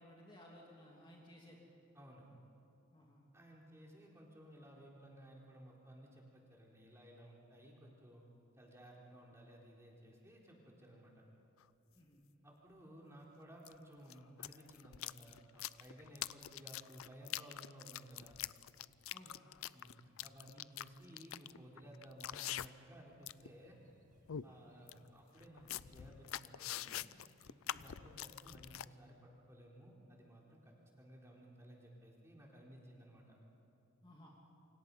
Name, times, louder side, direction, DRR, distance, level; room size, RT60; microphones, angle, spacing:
voice 1, 0.0-1.6 2.9-3.3 11.9-12.2 19.1-19.4 24.5-24.7 27.8-27.9 34.0-34.4, equal, 20° left, -2 dB, 2.7 m, -59 dB
voice 2, 1.9-2.3 3.3-8.2 8.5-11.2 12.4-18.4 19.7-23.8 24.4-27.1 27.5-33.4, right 1 dB, 15° right, -3 dB, 3.9 m, -57 dB
sound 1, 11.6-11.7 13.6-13.7 14.1-22.9 23.2-23.5 23.9-24.0 24.3-24.5 24.9-25.0 25.4-28.9, left 12 dB, 75° left, 0.5 m, -45 dB
sound 2, 23.4-28.9, equal, 35° right, 2.3 m, -72 dB
28.0 x 26.5 x 5.5 m, 2.8 s
head